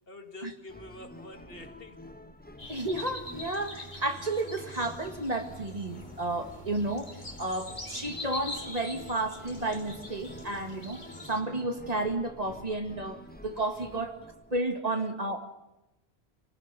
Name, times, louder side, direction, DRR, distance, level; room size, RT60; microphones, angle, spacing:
voice 1, 0.1-2.0 13.9-14.0 14.9-15.1, left 2 dB, 60° left, 1.9 m, -46 dB
sound 1, 0.7-14.6, left 1 dB, 10° left, 1.2 m, -49 dB
sound 2, 2.6-11.4, left 2 dB, 45° left, 2.6 m, -44 dB
voice 2, 2.7-14.2 14.5-15.5, right 2 dB, 35° right, 2.2 m, -32 dB
28.0 x 19.0 x 6.9 m
omnidirectional pair, 1.1 m